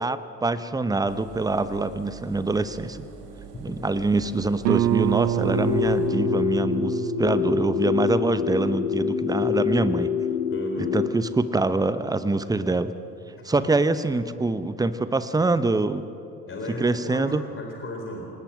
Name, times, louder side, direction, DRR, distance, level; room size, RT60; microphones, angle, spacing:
voice 1, 0.0-3.0 3.6-10.1 10.8-12.9 13.4-16.1 16.8-17.4, right 3 dB, 10° right, 13 dB, 0.9 m, -25 dB
Engine, 1.1-6.1, right 6 dB, 70° right, 2.7 m, -44 dB
voice 2, 3.5-3.9 10.5-11.0 16.5-18.3, left 1 dB, 25° left, 1 dB, 4.1 m, -35 dB
Guitar, 4.6-10.1, right 14 dB, 50° right, 1.0 m, -28 dB
sound 1, 5.4-11.1, left 8 dB, 65° left, 1.7 m, -26 dB
28.0 x 19.0 x 5.9 m, 2.9 s
figure-of-eight pair, 65°, 48 cm